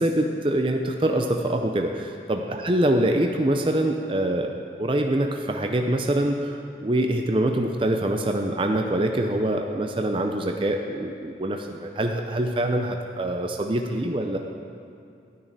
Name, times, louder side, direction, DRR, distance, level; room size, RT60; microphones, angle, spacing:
voice 1, 0.0-4.5 4.8-14.4, right 1 dB, 30° right, 3 dB, 0.5 m, -24 dB
12.0 x 6.5 x 9.0 m, 2.5 s
head